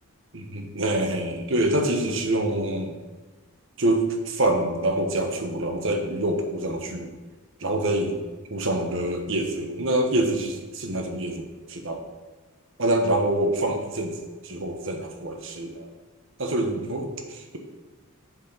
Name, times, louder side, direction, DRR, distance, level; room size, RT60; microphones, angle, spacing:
voice 1, 0.3-2.9 3.8-7.1 7.6-8.2 8.5-12.1 12.8-14.2 14.4-15.9 16.4-17.6, right 1 dB, 60° right, 4 dB, 1.4 m, -26 dB
7.5 x 7.1 x 5.7 m, 1.3 s
head